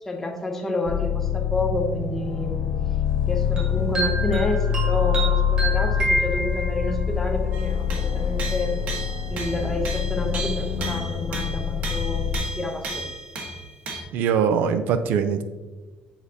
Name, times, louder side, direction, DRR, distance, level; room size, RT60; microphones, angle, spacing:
voice 1, 0.0-2.7 3.2-8.8 9.3-13.0, left 2 dB, 10° left, 1 dB, 0.7 m, -29 dB
sound 1, 0.9-12.4, left 8 dB, 60° left, 0.5 m, -25 dB
sound 2, 3.6-7.1, right 2 dB, 25° right, 1.3 m, -28 dB
sound 3, 7.5-14.0, right 3 dB, 55° right, 1.2 m, -35 dB
voice 2, 14.1-15.4, right 7 dB, 75° right, 10 dB, 0.5 m, -22 dB
7.3 x 4.8 x 2.8 m, 1.3 s
cardioid pair, 175°, 3 cm